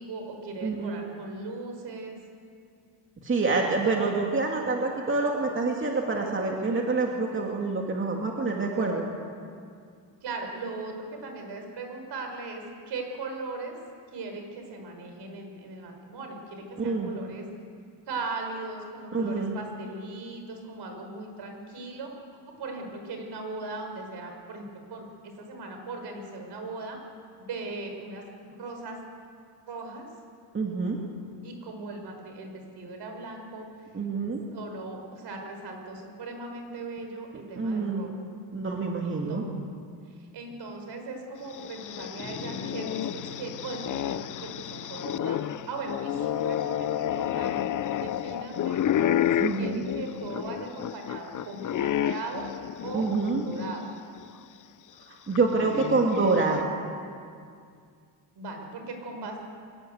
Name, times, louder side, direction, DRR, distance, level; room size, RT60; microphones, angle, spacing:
voice 1, 0.0-2.2 10.2-13.8 14.1-17.4 18.1-22.1 22.6-27.0 27.4-29.0 29.7-30.1 31.4-33.7 34.5-38.1 39.0-39.5 40.1-48.8 49.3-52.5 52.8-53.9 55.5-55.7 58.4-59.4, right 3 dB, 65° right, 3 dB, 5.6 m, -38 dB
voice 2, 0.6-1.0 3.2-9.1 16.8-17.1 19.1-19.5 30.5-31.0 33.9-34.4 37.6-38.1 38.5-39.5 49.4-49.8 52.9-53.4 55.1-56.7, right 3 dB, 30° right, 0 dB, 2.6 m, -27 dB
sound 1, 41.5-53.8 54.2-54.3 55.4-56.6, left 11 dB, 45° left, 0.6 m, -30 dB
sound 2, 42.2-48.6, left 3 dB, 30° left, 3.8 m, -46 dB
24.5 x 20.0 x 8.1 m, 2.3 s
cardioid pair, 130°, 43 cm